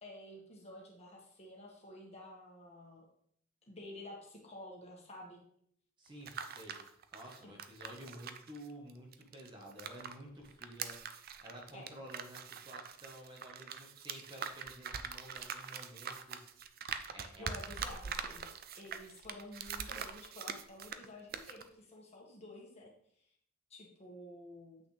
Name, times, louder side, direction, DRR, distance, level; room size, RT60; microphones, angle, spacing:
voice 1, 0.0-3.0 3.7-5.4 7.4-7.5 11.7-11.9 17.4-18.5 18.7-22.9 23.7-24.8, left 1 dB, 30° left, -1 dB, 1.7 m, -51 dB
voice 2, 6.0-16.5 17.1-17.5, right 1 dB, 25° right, 0 dB, 1.3 m, -52 dB
sound 1, 6.1-10.1 10.4-21.1 21.3-21.6, right 7 dB, 50° right, 0.5 m, -43 dB
8.2 x 6.3 x 3.3 m, 0.67 s
head